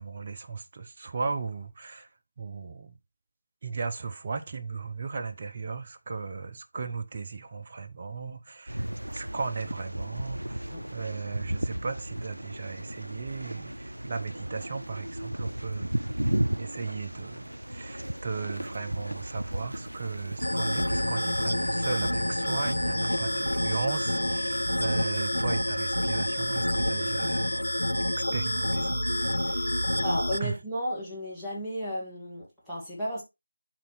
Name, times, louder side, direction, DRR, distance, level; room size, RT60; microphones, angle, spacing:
voice 1, 0.0-2.1 2.4-3.0 3.6-10.6 10.9-16.0 16.6-27.5 28.2-29.7 30.4-30.6, right 4 dB, 35° right, 0.7 m, -36 dB
sound 1, 8.7-27.6, right 1 dB, 90° right, 0.4 m, -36 dB
sound 2, 20.4-30.4, left 1 dB, 90° left, 0.6 m, -28 dB
voice 2, 22.9-23.4 30.0-33.2, equal, ahead, 1.8 m, -34 dB
11.5 x 4.1 x 3.0 m
figure-of-eight pair, 165°, 0 cm